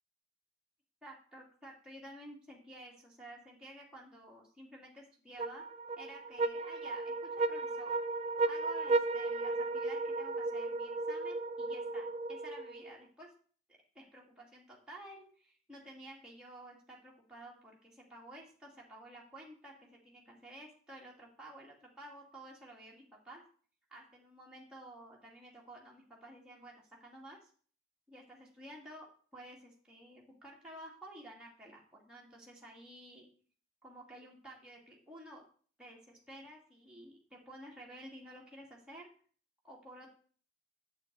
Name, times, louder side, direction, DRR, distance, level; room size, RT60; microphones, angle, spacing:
voice 1, 1.0-5.6 6.0-8.0 8.5-13.3 13.9-23.4 23.9-27.5 28.1-29.1 29.3-33.3 33.8-35.4 35.8-39.1 39.6-40.1, right 1 dB, 5° right, -4 dB, 2.0 m, -52 dB
sound 1, 5.4-12.9, right 3 dB, 30° right, 0.4 m, -35 dB
8.9 x 7.6 x 4.6 m, 0.44 s
head